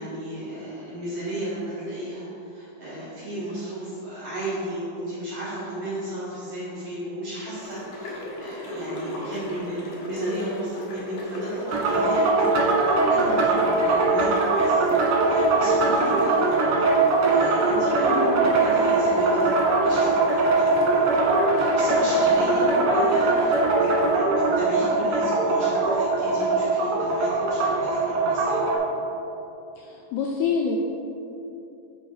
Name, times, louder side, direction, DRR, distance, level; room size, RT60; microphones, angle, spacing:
voice 1, 0.0-12.7 13.1-20.7 21.1-28.6, right 1 dB, 55° right, -10 dB, 2.1 m, -34 dB
sound 1, 7.5-24.1, left 1 dB, 65° left, 2.3 m, -37 dB
sound 2, 11.7-28.8, right 3 dB, 75° right, 3.2 m, -21 dB
voice 2, 29.8-30.8, left 6 dB, 85° left, 0 dB, 2.3 m, -26 dB
7.8 x 5.3 x 4.8 m, 2.9 s
omnidirectional pair, 5.1 m